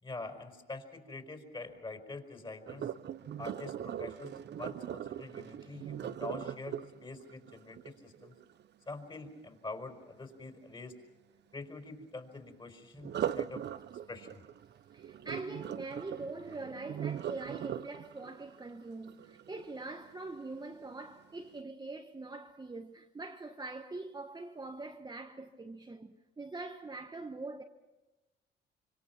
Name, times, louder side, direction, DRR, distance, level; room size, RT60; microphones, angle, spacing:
voice 1, 0.0-2.9 3.4-8.3 8.8-11.0 11.5-13.6 14.1-14.4, left 3 dB, 25° left, 4.8 m, -45 dB
Sink (filling or washing), 2.7-8.6 13.0-20.0 20.6-20.9 21.4-21.5, right 10 dB, 60° right, 0.8 m, -40 dB
voice 2, 14.9-27.6, right 3 dB, 20° right, 1.3 m, -43 dB
26.5 x 25.0 x 6.0 m
cardioid pair, 90°, 20 cm